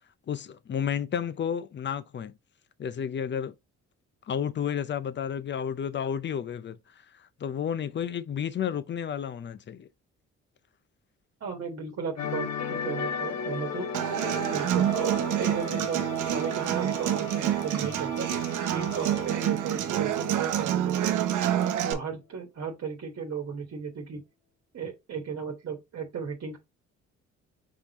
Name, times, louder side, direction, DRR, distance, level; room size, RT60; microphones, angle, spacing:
voice 1, 0.3-2.3 2.8-3.5 4.3-9.9, left 8 dB, 40° left, 0.5 m, -32 dB
voice 2, 11.4-13.9 14.5-14.9 15.4-18.3 18.7-21.2 21.8-24.2 24.7-26.6, right 6 dB, 55° right, 1.4 m, -35 dB
sound 1, 12.2-20.8 21.1-21.3, left 6 dB, 60° left, 1.0 m, -37 dB
Human voice / Acoustic guitar, 13.9-21.9, right 11 dB, 80° right, 0.8 m, -27 dB
4.9 x 3.6 x 2.8 m
cardioid pair, 90°, 30 cm